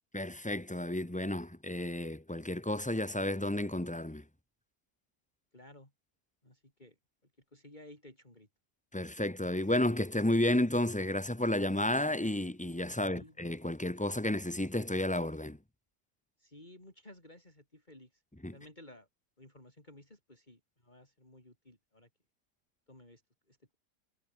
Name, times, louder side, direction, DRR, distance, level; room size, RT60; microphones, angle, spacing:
voice 1, 0.1-4.2 8.9-15.6 18.4-18.6, left 1 dB, 5° left, 1.5 m, -32 dB
voice 2, 5.5-5.9 6.4-6.9 7.5-8.5 12.9-13.4 16.4-18.2 18.5-19.1 19.4-22.1 22.9-23.2 23.5-23.8, left 1 dB, 25° left, 6.2 m, -55 dB
omnidirectional pair, 1.8 m